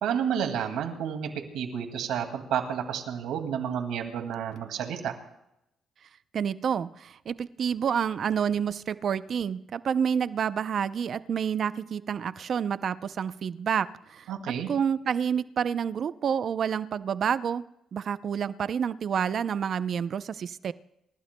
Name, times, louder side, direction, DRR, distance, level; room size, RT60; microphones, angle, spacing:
voice 1, 0.0-5.1 14.3-14.7, right 8 dB, 85° right, 5 dB, 2.2 m, -30 dB
voice 2, 6.3-14.3 14.7-17.6 17.9-20.7, right 7 dB, 55° right, 14 dB, 0.5 m, -28 dB
28.5 x 15.0 x 2.2 m, 0.83 s
cardioid pair, 90°, 0 cm